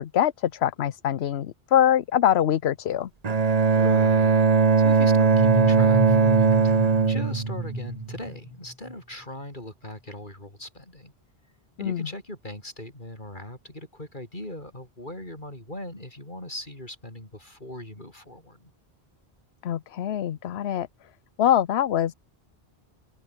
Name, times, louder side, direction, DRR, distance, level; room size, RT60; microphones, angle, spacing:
voice 1, 0.0-3.1 11.8-12.1 19.6-20.9 21.4-22.1, left 10 dB, 75° left, 1.0 m, -23 dB
Bowed string instrument, 3.2-8.3, right 5 dB, 40° right, 1.1 m, -20 dB
voice 2, 3.7-11.1 11.8-18.7, left 1 dB, 50° left, 7.5 m, -39 dB
sound 1, 5.3-8.9, equal, ahead, 1.1 m, -32 dB
open air
omnidirectional pair, 1.1 m